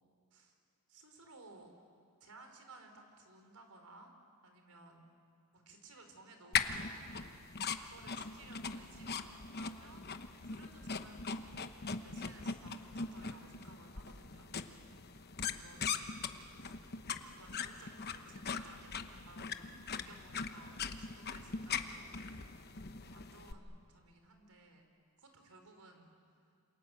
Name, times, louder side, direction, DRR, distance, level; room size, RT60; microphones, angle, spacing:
voice 1, 0.9-1.7 2.2-4.1 4.4-5.0 5.5-7.1 7.7-10.2 10.4-11.6 12.0-14.5 15.5-16.1 16.6-16.8 17.3-22.6 23.0-24.9 25.2-26.1, right 2 dB, 90° right, 5 dB, 4.2 m, -58 dB
sound 1, 6.5-23.5, left 5 dB, 45° left, 1.0 m, -41 dB
28.0 x 27.5 x 7.7 m, 2.5 s
head